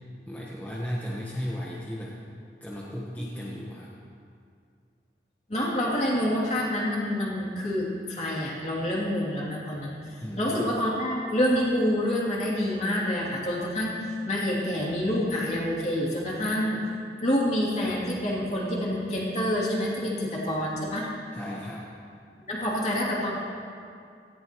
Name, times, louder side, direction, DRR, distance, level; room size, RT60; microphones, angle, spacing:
voice 1, 0.3-2.2 2.6-3.9 10.2-10.6 21.3-21.9, equal, 10° left, -5 dB, 1.1 m, -35 dB
voice 2, 5.5-21.1 22.4-23.3, left 1 dB, 40° left, -5 dB, 2.7 m, -27 dB
17.5 x 14.5 x 3.0 m, 2.3 s
head